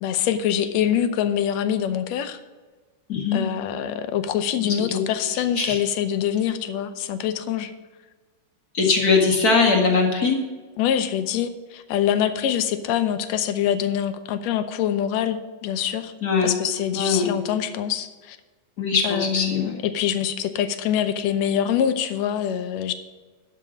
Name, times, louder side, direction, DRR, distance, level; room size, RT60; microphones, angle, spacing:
voice 1, 0.0-2.4 3.3-7.7 9.0-9.3 10.8-16.1 16.4-18.4 19.0-22.9, left 9 dB, 70° left, 10 dB, 1.8 m, -25 dB
voice 2, 3.1-3.4 4.6-5.0 5.6-5.8 8.7-10.4 16.2-16.5 16.9-17.3 18.8-19.7, left 4 dB, 35° left, 0 dB, 1.8 m, -21 dB
12.5 x 5.0 x 7.4 m, 1.4 s
omnidirectional pair, 3.5 m